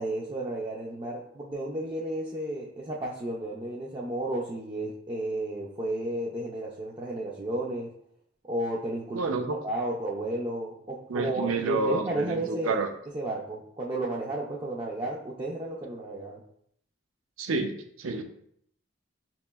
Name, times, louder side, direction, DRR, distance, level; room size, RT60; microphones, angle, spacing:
voice 1, 0.0-7.9 8.4-9.3 9.6-12.8 13.1-16.4, right 1 dB, 25° right, -4 dB, 0.3 m, -32 dB
voice 2, 9.1-9.6 11.1-12.9 17.4-18.2, right 3 dB, 85° right, 6 dB, 0.5 m, -29 dB
5.0 x 2.9 x 2.2 m, 0.68 s
head